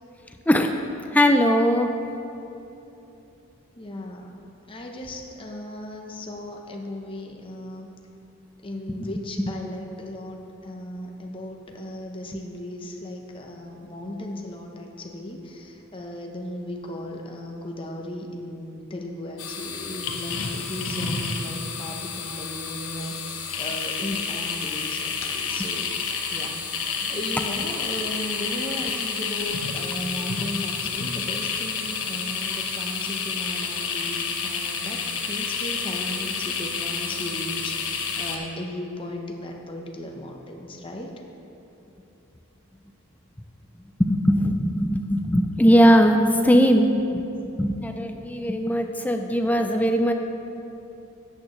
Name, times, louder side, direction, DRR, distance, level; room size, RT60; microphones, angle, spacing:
voice 1, 1.1-1.9 8.9-9.1 9.5-9.6 44.0-50.1, equal, 5° left, 5 dB, 0.4 m, -20 dB
voice 2, 3.8-4.3 4.7-7.9 8.6-26.0 26.3-26.6 27.1-41.1, left 1 dB, 25° left, 1 dB, 0.9 m, -36 dB
sound 1, 19.4-38.4, left 5 dB, 70° left, 1.0 m, -30 dB
13.0 x 8.7 x 3.2 m, 2.9 s
head